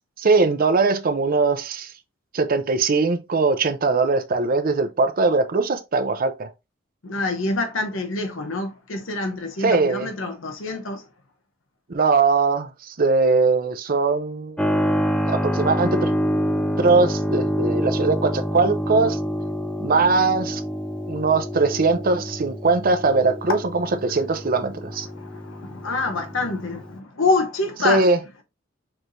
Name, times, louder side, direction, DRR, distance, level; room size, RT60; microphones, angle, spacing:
voice 1, 0.2-1.9 2.3-6.5 9.6-10.1 11.9-14.6 15.3-16.1 16.8-19.2 19.8-20.6 21.1-25.1 27.8-28.2, right 3 dB, 45° right, 0.6 m, -21 dB
voice 2, 7.0-11.0 25.0-28.0, left 3 dB, 85° left, 0.9 m, -26 dB
Keyboard (musical), 14.6-27.0, equal, 5° left, 0.3 m, -27 dB
6.1 x 3.2 x 2.6 m
head